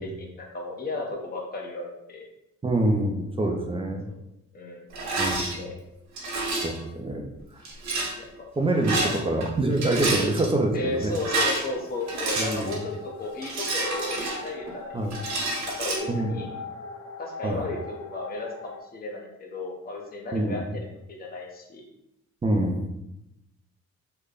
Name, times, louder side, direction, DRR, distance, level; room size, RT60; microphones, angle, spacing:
voice 1, 0.0-2.2 4.1-4.2 4.5-4.9 5.5-5.7 8.2-8.5 9.0-9.3 10.7-16.5 17.2-21.8, left 2 dB, 30° left, -1 dB, 0.7 m, -34 dB
voice 2, 2.6-4.1 5.2-5.6 6.6-7.3 7.5-7.6 8.6-11.1 12.4-12.7 14.9-15.2 16.1-16.4 17.4-17.6 20.3-20.7 22.4-22.9, right 1 dB, 20° right, 2 dB, 0.5 m, -26 dB
Rattle, 4.9-5.5 6.2-6.8 7.6-8.1 8.7-9.5 9.7-10.5 11.0-12.8 13.4-14.7 15.1-16.0, right 2 dB, 65° right, 1.1 m, -28 dB
sound 1, 11.7-18.8, left 4 dB, 65° left, 0.6 m, -42 dB
3.3 x 2.2 x 3.7 m, 0.85 s
cardioid pair, 90°, 30 cm